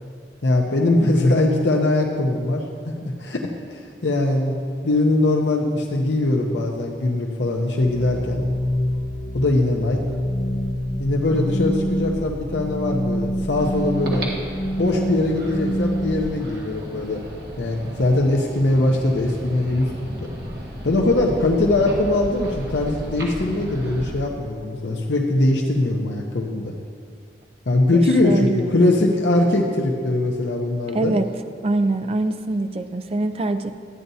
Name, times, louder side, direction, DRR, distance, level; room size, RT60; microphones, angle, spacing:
voice 1, 0.4-2.9 3.2-4.5 4.8-8.4 9.3-10.0 11.0-14.3 14.8-17.2 17.6-19.9 20.2-20.3 20.8-26.7 27.7-31.2, left 2 dB, 80° left, 0 dB, 0.8 m, -21 dB
sound 1, 7.8-16.2, equal, 55° left, 1.2 m, -26 dB
sound 2, 13.5-24.1, right 1 dB, 60° right, 1.6 m, -35 dB
voice 2, 27.9-28.8 30.9-31.3 31.6-33.7, right 2 dB, 35° right, 9 dB, 0.4 m, -24 dB
14.0 x 9.0 x 2.7 m, 2.2 s
head